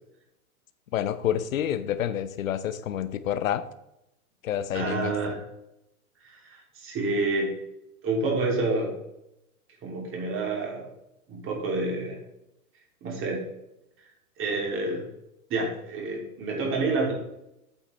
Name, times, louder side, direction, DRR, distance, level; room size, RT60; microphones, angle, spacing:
voice 1, 0.9-3.7 4.4-5.2, left 10 dB, 65° left, 14 dB, 0.9 m, -28 dB
voice 2, 4.7-5.4 6.2-7.5 8.0-8.9 9.8-10.9 11.3-12.2 13.0-13.5 14.4-15.1 15.5-17.1, right 3 dB, 30° right, -1 dB, 3.0 m, -28 dB
8.5 x 8.4 x 3.4 m, 0.86 s
hypercardioid pair, 105°, 43 cm